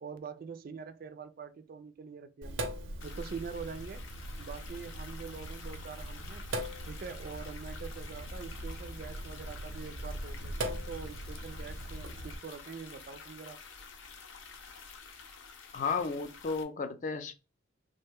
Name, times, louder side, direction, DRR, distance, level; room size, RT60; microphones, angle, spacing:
voice 1, 0.0-2.7 3.0-4.0 4.4-6.5 6.9-13.6, right 6 dB, 50° right, 0.3 m, -44 dB
Sink (filling or washing), 2.4-12.4, right 1 dB, 85° right, 0.6 m, -40 dB
sound 1, 3.0-16.6, left 5 dB, 85° left, 0.6 m, -50 dB
voice 2, 15.7-17.3, left 4 dB, 40° left, 0.3 m, -33 dB
3.1 x 2.2 x 3.3 m
head